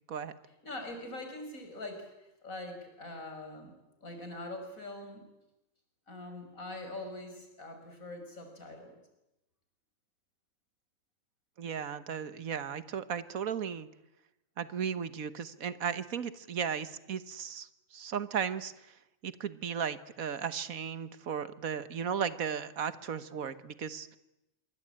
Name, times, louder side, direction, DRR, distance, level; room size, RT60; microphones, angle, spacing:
voice 1, 0.6-5.3 6.1-9.0, left 2 dB, 80° left, 5 dB, 5.8 m, -43 dB
voice 2, 11.6-13.9 14.6-18.9 19.2-24.1, right 7 dB, 90° right, 13 dB, 1.7 m, -35 dB
26.5 x 23.0 x 8.9 m, 0.92 s
omnidirectional pair, 1.4 m